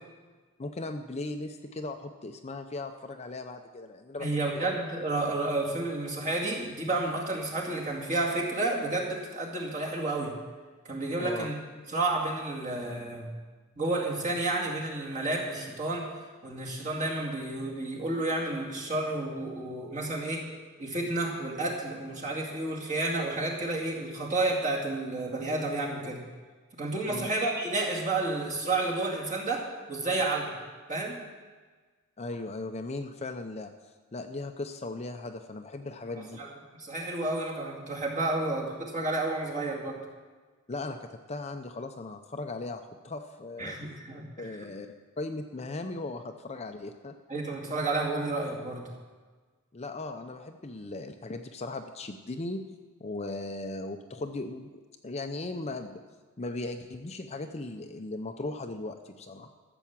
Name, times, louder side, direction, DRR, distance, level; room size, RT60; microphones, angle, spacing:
voice 1, 0.6-4.3 4.5-4.7 11.2-11.5 27.1-27.3 32.2-33.7 34.1-36.4 40.7-43.8 44.4-44.9 45.2-47.2 49.7-52.6 53.0-56.0 56.4-59.5, left 2 dB, 30° left, 6 dB, 0.6 m, -37 dB
voice 2, 4.2-10.3 10.8-11.5 11.9-13.3 13.8-16.1 16.4-20.5 20.8-26.2 26.8-30.6 30.9-31.2 36.4-36.5 36.8-40.0 43.6-44.5 47.3-48.9, right 2 dB, 35° right, -2 dB, 2.3 m, -31 dB
14.0 x 7.1 x 7.3 m, 1.4 s
head